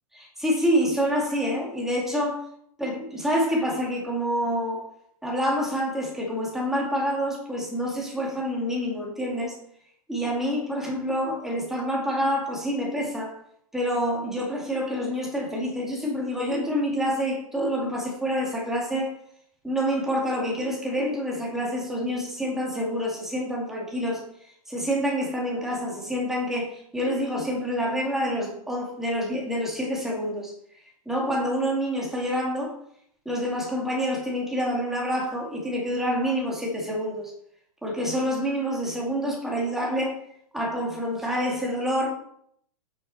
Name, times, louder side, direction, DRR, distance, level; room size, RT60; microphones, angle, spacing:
voice 1, 0.1-2.4 2.8-4.8 5.2-9.6 10.1-13.4 13.7-19.1 19.6-24.2 24.7-30.5 31.1-32.7 33.3-37.3 37.8-40.2 40.5-42.1, equal, ahead, -3 dB, 2.3 m, -27 dB
8.6 x 6.5 x 4.3 m, 0.68 s
hypercardioid pair, 150°, 19 cm